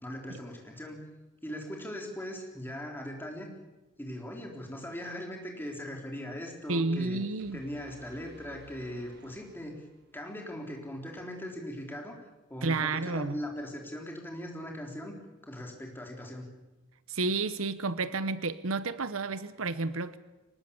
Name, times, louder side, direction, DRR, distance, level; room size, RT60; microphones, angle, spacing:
voice 1, 0.0-1.0 1.4-3.5 4.0-7.2 7.5-9.8 10.1-12.2 12.5-15.2 15.4-16.5, equal, 10° left, 3.8 m, -40 dB
voice 2, 6.7-7.6 12.6-13.4 17.1-20.2, right 3 dB, 75° right, 1.0 m, -31 dB
sound 1, 7.4-10.3, right 2 dB, 50° right, 1.8 m, -55 dB
23.5 x 20.0 x 7.1 m
head